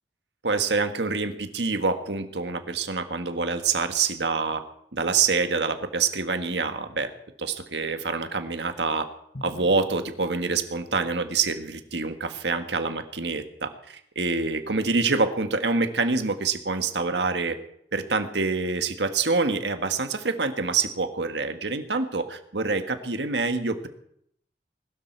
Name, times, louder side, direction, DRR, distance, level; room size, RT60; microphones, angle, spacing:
voice 1, 0.4-4.6 4.9-7.1 7.4-9.1 9.4-17.6 17.9-23.9, right 4 dB, 80° right, 7 dB, 1.6 m, -26 dB
Drum, 9.3-11.1, left 1 dB, 50° left, 1.5 m, -45 dB
20.5 x 12.5 x 4.6 m, 0.72 s
head